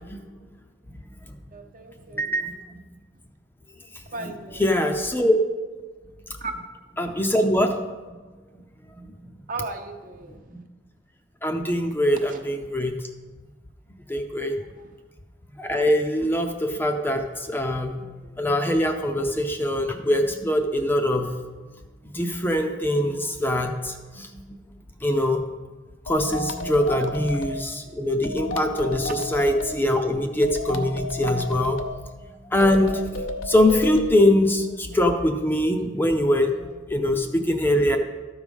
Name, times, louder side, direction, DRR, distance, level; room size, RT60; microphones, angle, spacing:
voice 1, 1.5-2.3 4.1-4.7 6.4-6.5 9.5-10.5 12.3-12.4, right 3 dB, 45° right, 5 dB, 0.8 m, -36 dB
voice 2, 2.2-2.5 4.6-5.4 7.0-7.7 10.5-10.6 11.4-12.9 14.1-14.5 15.6-17.9 18.4-21.3 22.1-24.3 25.0-25.4 26.1-31.8 32.5-38.0, left 1 dB, 10° left, 4 dB, 0.5 m, -23 dB
sound 1, 26.1-27.6 28.2-29.7 30.4-31.9 32.6-34.1, left 2 dB, 85° left, 0.7 m, -32 dB
13.0 x 4.8 x 5.4 m, 1.3 s
head